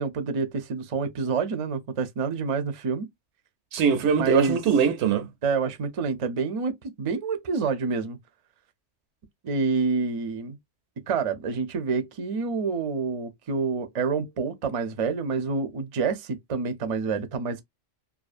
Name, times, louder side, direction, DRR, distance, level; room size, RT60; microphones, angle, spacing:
voice 1, 0.0-3.1 4.2-4.6 5.4-8.2 9.4-10.6 11.1-17.6, right 5 dB, 45° right, 0.5 m, -28 dB
voice 2, 3.7-5.3, right 7 dB, 75° right, 0.9 m, -22 dB
2.6 x 2.3 x 2.4 m
omnidirectional pair, 1.2 m